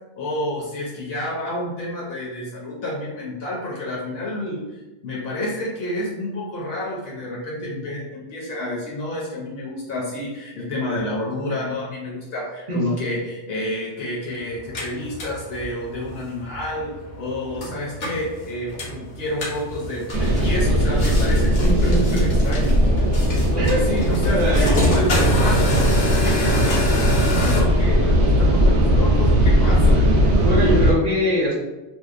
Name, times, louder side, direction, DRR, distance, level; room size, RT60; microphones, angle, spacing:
voice 1, 0.2-4.7 5.0-22.8 23.3-30.1 30.5-30.8, left 1 dB, 65° left, -4 dB, 0.8 m, -29 dB
sound 1, 14.6-27.6, equal, 85° left, 1.1 m, -27 dB
sound 2, 20.1-30.9, equal, 75° right, 0.8 m, -18 dB
voice 2, 21.6-22.2 23.6-24.9 30.4-31.5, equal, 45° right, -4 dB, 0.6 m, -22 dB
2.7 x 2.0 x 2.4 m, 1.1 s
omnidirectional pair, 1.2 m